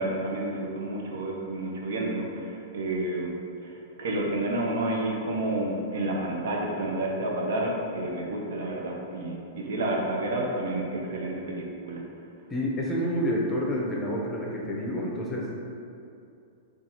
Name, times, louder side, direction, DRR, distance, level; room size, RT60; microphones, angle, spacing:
voice 1, 0.0-3.3 3.6-12.0, right 1 dB, 75° right, -1 dB, 0.6 m, -30 dB
voice 2, 12.5-15.5, equal, 15° left, -3 dB, 0.5 m, -28 dB
3.8 x 2.4 x 2.9 m, 2.6 s
hypercardioid pair, 135°, 0 cm